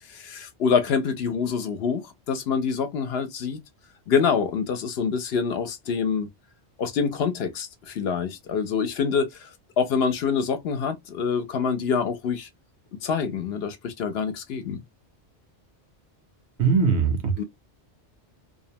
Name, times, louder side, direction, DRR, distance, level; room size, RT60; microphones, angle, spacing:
voice 1, 0.1-3.6 4.1-6.3 6.8-12.5 13.0-14.8 17.4-17.5, left 6 dB, 70° left, 0.8 m, -26 dB
voice 2, 16.6-17.4, right 5 dB, 75° right, 1.0 m, -21 dB
2.6 x 2.0 x 2.7 m
omnidirectional pair, 1.2 m